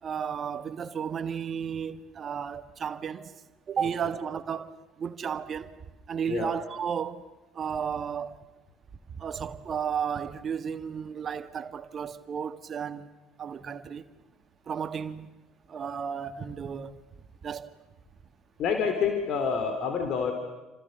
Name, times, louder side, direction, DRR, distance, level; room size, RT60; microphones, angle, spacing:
voice 1, 0.0-5.8 6.1-7.2 7.5-8.4 9.1-13.1 13.4-14.1 14.7-15.4 15.7-17.0 17.4-17.8, right 7 dB, 40° right, 1.7 m, -33 dB
voice 2, 18.6-20.3, left 6 dB, 50° left, 3.8 m, -27 dB
29.5 x 27.5 x 6.8 m
figure-of-eight pair, 55°, 0 cm